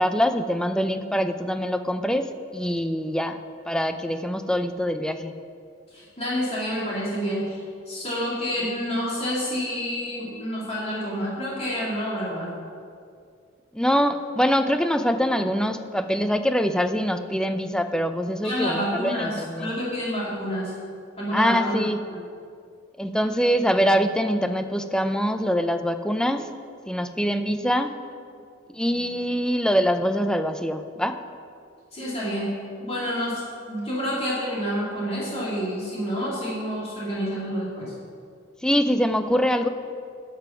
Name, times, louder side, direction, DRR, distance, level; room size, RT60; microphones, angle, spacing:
voice 1, 0.0-2.3 2.5-3.4 3.7-5.3 13.7-19.7 21.3-22.0 23.0-26.5 26.9-27.9 28.7-31.1 38.6-39.7, equal, 5° left, 8 dB, 0.5 m, -24 dB
voice 2, 5.9-12.5 18.4-20.7 21.2-21.8 22.1-22.2 31.9-32.5 32.8-37.9, equal, 30° left, -7 dB, 2.7 m, -28 dB
11.5 x 7.0 x 5.9 m, 2.3 s
head